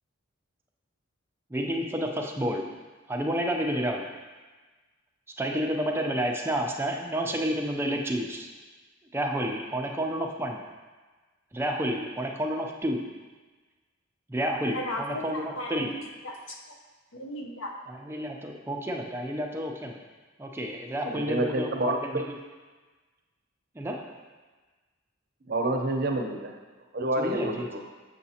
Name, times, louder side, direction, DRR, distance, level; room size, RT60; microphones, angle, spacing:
voice 1, 1.5-2.7 3.1-4.1 5.4-8.5 9.1-10.6 11.5-13.1 14.3-16.0 17.9-20.0 20.4-22.2 23.8-24.1 27.2-27.8, equal, 10° right, 1 dB, 0.4 m, -30 dB
voice 2, 14.7-16.6 17.1-17.8, left 1 dB, 80° left, 2 dB, 0.8 m, -36 dB
voice 3, 21.0-22.0 25.5-26.5 26.9-27.8, right 1 dB, 50° right, 2 dB, 0.7 m, -28 dB
7.1 x 5.8 x 2.8 m, 1.3 s
head